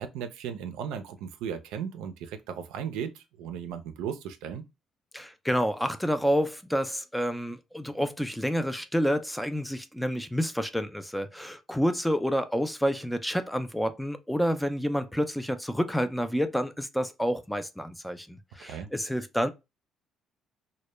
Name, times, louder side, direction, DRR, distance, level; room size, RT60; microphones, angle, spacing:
voice 1, 0.0-4.6 18.6-18.9, right 8 dB, 85° right, 0.4 m, -36 dB
voice 2, 5.1-19.5, equal, 5° left, 0.3 m, -29 dB
2.1 x 2.1 x 3.0 m
supercardioid pair, 80°, 0 cm